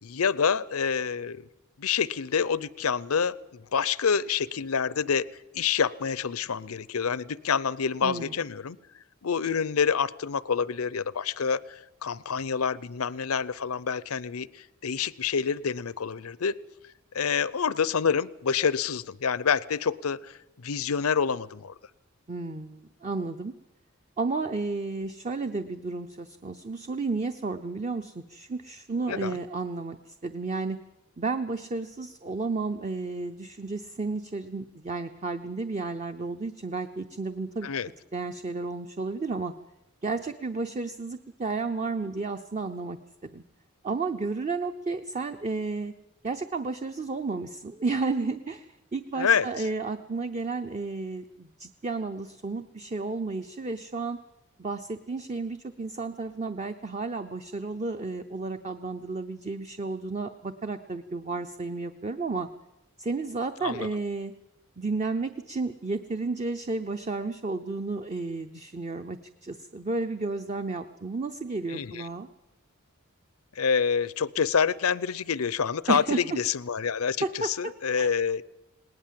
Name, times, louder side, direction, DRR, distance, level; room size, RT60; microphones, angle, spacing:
voice 1, 0.0-1.4 1.8-5.3 5.5-8.8 9.2-16.6 17.1-21.7 29.1-29.4 37.6-37.9 49.2-49.5 63.6-63.9 71.7-72.1 73.6-77.2 77.4-78.4, left 6 dB, 90° left, 20 dB, 0.6 m, -27 dB
voice 2, 8.0-8.3 22.3-23.5 24.2-30.8 31.2-37.7 38.1-39.5 40.0-43.4 43.8-45.9 46.2-54.2 54.6-62.5 63.0-64.3 64.8-72.3 75.9-76.2 77.2-77.7 78.0-78.1, right 3 dB, 30° right, 8 dB, 0.6 m, -32 dB
19.5 x 19.0 x 7.6 m, 0.93 s
head